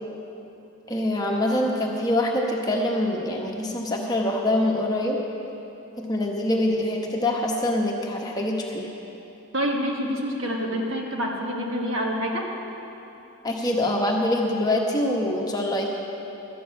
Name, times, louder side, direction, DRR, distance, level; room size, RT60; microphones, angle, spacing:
voice 1, 0.9-5.2 6.0-8.9 13.4-15.9, left 1 dB, 20° left, 0 dB, 1.0 m, -24 dB
voice 2, 9.5-12.4, equal, 65° right, 0 dB, 1.6 m, -27 dB
12.5 x 6.9 x 8.4 m, 2.9 s
head